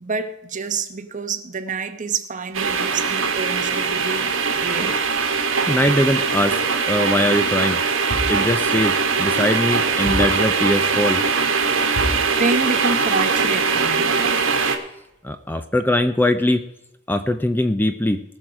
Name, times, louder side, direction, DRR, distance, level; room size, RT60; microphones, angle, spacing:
voice 1, 0.0-5.0 12.4-14.1, right 4 dB, 40° right, 1.0 m, -27 dB
sound 1, 2.5-14.8, right 5 dB, 65° right, 1.7 m, -21 dB
voice 2, 5.7-6.6 6.9-7.8 8.3-11.2 15.2-16.6 17.1-18.2, left 1 dB, 10° left, 0.5 m, -21 dB
sound 2, 8.1-8.5 10.0-10.5 11.9-12.3, equal, 65° left, 4.7 m, -27 dB
19.0 x 6.4 x 4.8 m
head